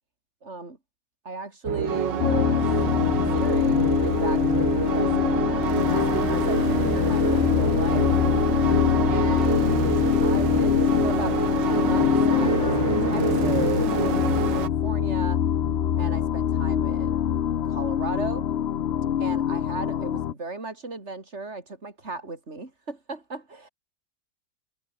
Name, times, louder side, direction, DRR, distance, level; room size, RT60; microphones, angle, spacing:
voice 1, 0.4-0.8 1.2-2.6 3.1-8.1 9.1-10.8 11.0-15.4 16.0-17.3 17.7-18.5 19.2-23.7, right 3 dB, 35° right, 4.7 m, -36 dB
sound 1, 1.6-14.7, right 8 dB, 75° right, 2.1 m, -27 dB
sound 2, 2.2-20.3, left 9 dB, 60° left, 0.6 m, -24 dB
sound 3, 5.8-14.5, left 3 dB, 80° left, 5.7 m, -35 dB
omnidirectional pair, 2.0 m